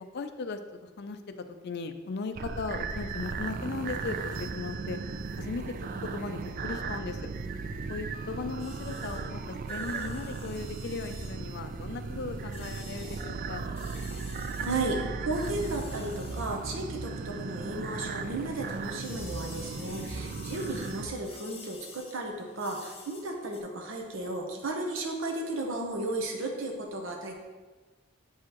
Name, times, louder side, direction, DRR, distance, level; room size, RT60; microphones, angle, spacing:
voice 1, 0.1-5.0 5.4-5.8 6.0-7.3 7.9-13.7, left 4 dB, 55° left, 8 dB, 0.5 m, -37 dB
sound 1, 2.3-21.1, right 4 dB, 45° right, 0.4 m, -36 dB
sound 2, 8.6-17.6 17.9-23.6, left 4 dB, 30° left, 0.9 m, -51 dB
voice 2, 14.6-27.3, right 2 dB, 80° right, 2 dB, 0.9 m, -34 dB
8.3 x 4.7 x 3.0 m, 1.3 s
head